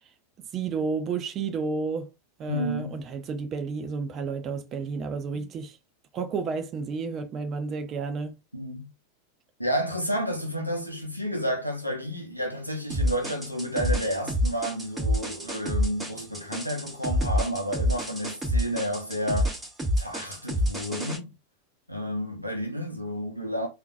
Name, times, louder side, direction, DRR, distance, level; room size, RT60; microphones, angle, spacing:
voice 1, 0.5-2.1 2.4-5.8 6.1-8.3, right 5 dB, 30° right, 0.6 m, -31 dB
voice 2, 2.5-3.0 5.3-5.5 8.5-8.9 9.6-19.5 20.0-21.3 21.9-23.7, equal, 90° right, 0.9 m, -31 dB
sound 1, 12.9-21.2, equal, 15° right, 1.9 m, -28 dB
3.8 x 2.7 x 2.5 m
figure-of-eight pair, 90°, 0 cm